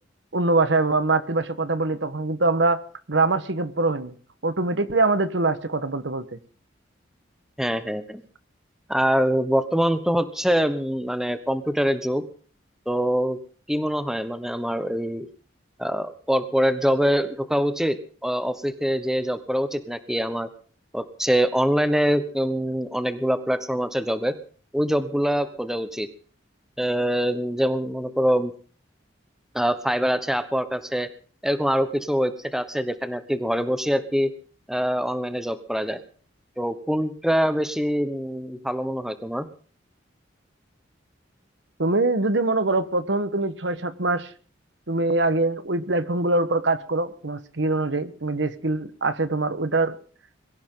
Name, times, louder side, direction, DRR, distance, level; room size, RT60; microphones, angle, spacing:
voice 1, 0.3-2.8 3.1-4.1 4.4-6.4 41.8-44.3 44.9-50.0, right 2 dB, 70° right, 12 dB, 1.3 m, -23 dB
voice 2, 7.6-8.2 8.9-12.2 12.9-13.4 13.7-15.3 15.8-18.0 18.2-20.5 20.9-24.3 24.7-26.1 26.8-28.5 29.5-31.1 31.4-34.3 34.7-36.0 36.6-39.5, equal, 5° right, 11 dB, 1.1 m, -24 dB
23.0 x 15.5 x 3.9 m, 0.42 s
head